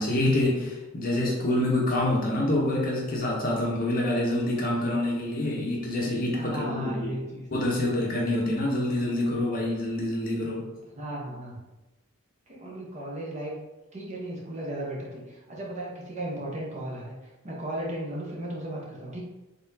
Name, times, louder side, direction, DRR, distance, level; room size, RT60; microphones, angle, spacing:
voice 1, 0.0-6.9 7.5-10.6, left 1 dB, 40° left, -2 dB, 0.9 m, -26 dB
voice 2, 6.3-7.8 10.9-11.6 12.5-13.5 13.9-19.2, right 1 dB, 35° right, -4 dB, 0.9 m, -36 dB
4.1 x 3.6 x 2.7 m, 1.1 s
head